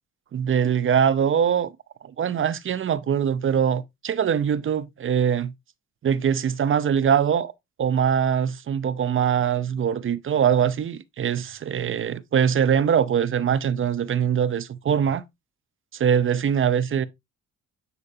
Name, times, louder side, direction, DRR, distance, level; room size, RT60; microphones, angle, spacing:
voice 1, 0.3-1.7 2.0-5.5 6.0-7.5 7.8-15.2 15.9-17.1, right 8 dB, 45° right, 0.6 m, -22 dB
9.7 x 4.5 x 2.7 m
cardioid pair, 90°, 30 cm